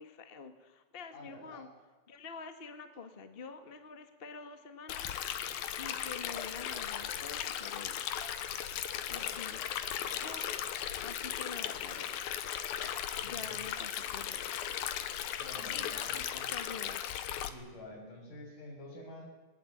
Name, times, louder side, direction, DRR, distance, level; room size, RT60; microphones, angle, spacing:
voice 1, 0.0-1.7 2.1-8.0 9.1-9.6 10.1-10.5 11.0-12.1 13.2-14.7 15.7-17.0, left 5 dB, 45° left, 8 dB, 0.7 m, -47 dB
voice 2, 1.1-1.7 8.5-8.7 9.1-9.5 13.1-13.5 15.3-16.5 17.5-19.3, left 1 dB, 60° left, 0 dB, 8.2 m, -50 dB
Stream, 4.9-17.5, left 10 dB, 90° left, 3.0 m, -37 dB
21.0 x 19.5 x 9.9 m, 1.2 s
omnidirectional pair, 4.1 m